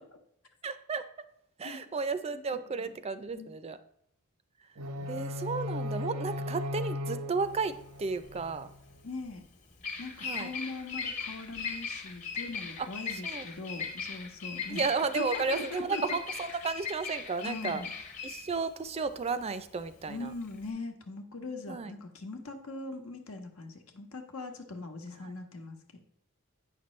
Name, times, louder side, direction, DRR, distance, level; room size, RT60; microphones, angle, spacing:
voice 1, 0.6-1.1 1.6-3.8 5.1-8.7 10.2-10.5 12.8-12.9 13.2-13.5 14.7-17.8 18.2-20.3 21.7-21.9 25.2-25.3, right 4 dB, 30° right, 12 dB, 0.4 m, -33 dB
sound 1, 4.8-8.8, left 1 dB, 85° right, 0.8 m, -37 dB
Bird vocalization bird call bird song, 7.4-20.7, left 5 dB, 35° left, 1.0 m, -39 dB
voice 2, 9.0-9.4 10.0-14.8 15.1-16.2 17.4-17.9 20.1-26.0, left 3 dB, 80° left, 5 dB, 1.1 m, -41 dB
8.6 x 5.9 x 3.1 m, 0.74 s
head